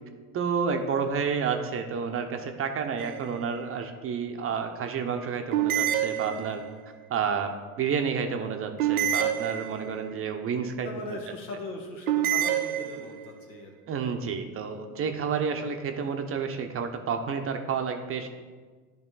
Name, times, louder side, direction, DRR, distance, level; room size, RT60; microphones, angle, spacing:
voice 1, 0.3-6.6 7.1-7.5 7.8-11.2 13.9-18.3, right 6 dB, 30° right, 6 dB, 0.7 m, -30 dB
sound 1, 3.0-3.6 5.5-6.8 8.8-10.1 12.1-13.3, right 10 dB, 70° right, 0.7 m, -28 dB
voice 2, 10.8-13.8, left 2 dB, 80° left, 1 dB, 1.6 m, -39 dB
10.0 x 3.5 x 3.9 m, 1.4 s
hypercardioid pair, 90°, 44 cm